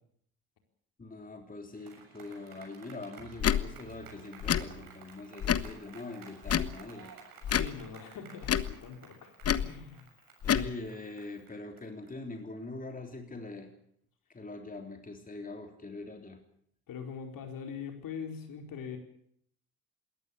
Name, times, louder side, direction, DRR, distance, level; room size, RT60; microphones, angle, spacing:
voice 1, 1.0-7.1 10.4-13.7 14.3-16.4, left 2 dB, 20° left, 5 dB, 3.5 m, -43 dB
sound 1, 1.7-13.1, right 7 dB, 50° right, 7.1 m, -53 dB
Tick / Tick-tock, 3.4-3.6 4.4-4.6 5.4-5.7 6.4-6.7 7.4-7.7 8.4-8.7 9.4-9.7 10.4-10.7, left 9 dB, 35° left, 1.1 m, -27 dB
voice 2, 7.5-10.1 16.9-19.0, left 6 dB, 50° left, 5 dB, 4.4 m, -42 dB
21.0 x 18.0 x 8.4 m, 0.69 s
figure-of-eight pair, 55°, 43 cm